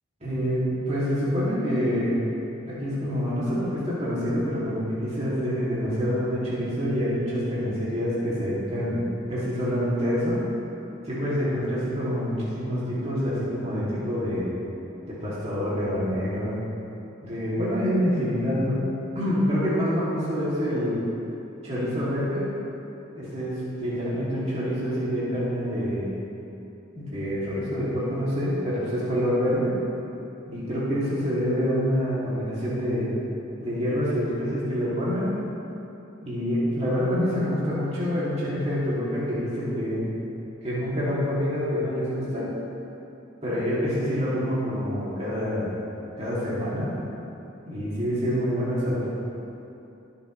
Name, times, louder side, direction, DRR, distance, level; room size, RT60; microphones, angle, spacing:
voice 1, 0.2-2.2 2.7-9.0 9.3-10.4 11.0-14.5 15.1-16.6 17.2-18.8 19.1-21.0 21.6-22.5 23.1-26.1 27.0-29.7 30.5-33.1 33.6-35.3 36.2-40.0 40.6-42.5 43.4-45.7 46.2-46.9 47.7-49.1, equal, 30° right, -10 dB, 2.6 m, -26 dB
21.5 x 7.2 x 3.2 m, 2.9 s
head